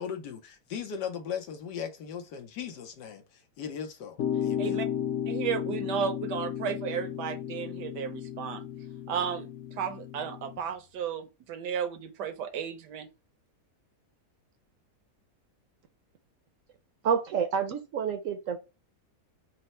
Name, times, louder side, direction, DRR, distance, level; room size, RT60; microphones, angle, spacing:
voice 1, 0.0-3.2 3.6-4.7, left 7 dB, 90° left, 1.4 m, -38 dB
sound 1, 4.2-10.6, left 9 dB, 65° left, 0.8 m, -34 dB
voice 2, 5.3-8.6 9.1-9.5 9.8-13.1, right 8 dB, 80° right, 1.3 m, -33 dB
voice 3, 17.0-18.6, right 7 dB, 65° right, 0.9 m, -28 dB
4.4 x 2.1 x 4.1 m
omnidirectional pair, 1.8 m